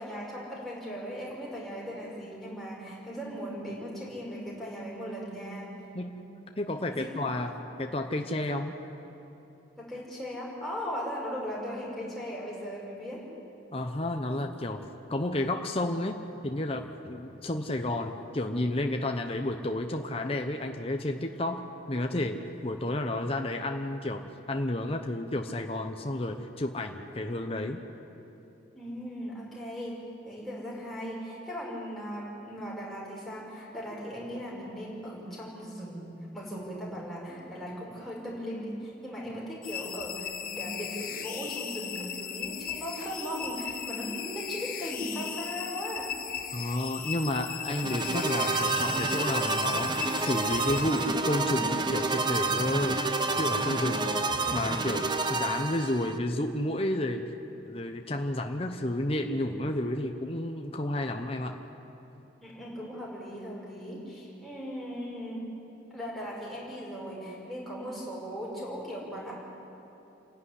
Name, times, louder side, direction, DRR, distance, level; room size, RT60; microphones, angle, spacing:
voice 1, 0.0-5.7 7.0-7.1 9.8-13.2 28.7-30.0 30.2-36.1 36.3-46.1 53.8-54.0 62.4-65.4 65.9-69.3, equal, ahead, -6 dB, 5.6 m, -38 dB
voice 2, 5.9-8.7 13.7-14.8 15.1-16.2 16.4-27.8 46.5-53.0 53.4-54.1 54.5-57.3 57.7-61.6, left 1 dB, 30° left, 4 dB, 0.9 m, -31 dB
sound 1, 39.6-51.5, left 8 dB, 50° left, 1.4 m, -37 dB
sound 2, 47.7-56.2, right 3 dB, 25° right, 0.8 m, -29 dB
28.5 x 11.5 x 9.9 m, 2.9 s
head